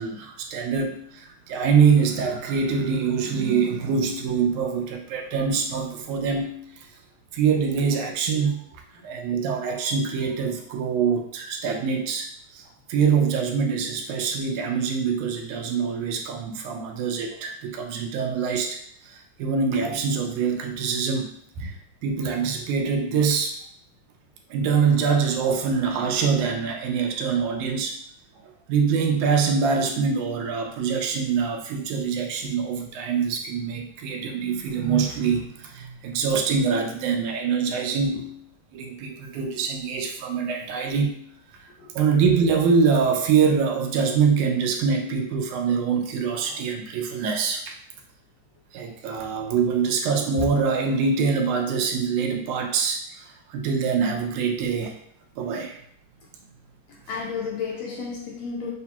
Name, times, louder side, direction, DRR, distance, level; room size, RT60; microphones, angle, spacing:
voice 1, 0.0-6.9 7.3-8.6 9.0-12.3 12.5-18.8 19.0-21.7 22.0-23.6 24.5-28.0 28.4-38.4 38.7-41.2 42.0-47.8 48.7-54.9 55.4-55.8, right 5 dB, 85° right, 2.1 m, -24 dB
voice 2, 56.9-58.7, left 5 dB, 80° left, 1.6 m, -33 dB
6.5 x 2.8 x 2.3 m
omnidirectional pair, 3.4 m